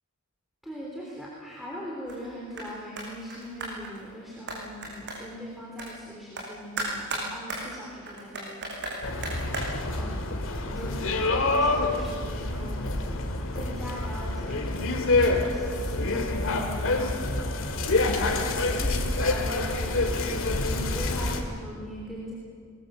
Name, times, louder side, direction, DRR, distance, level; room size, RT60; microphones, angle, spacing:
voice 1, 0.6-9.5 9.8-10.3 10.6-17.4 17.8-20.2 20.6-22.3, equal, ahead, -4 dB, 3.6 m, -41 dB
sound 1, 2.1-2.3 2.5-2.7 3.0-4.0 4.5-5.4 5.8-5.9 6.4-6.5 6.8-9.6, right 2 dB, 55° right, 6.4 m, -35 dB
sound 2, 9.0-21.4, left 2 dB, 60° left, 2.2 m, -27 dB
22.5 x 21.0 x 7.7 m, 2.1 s
head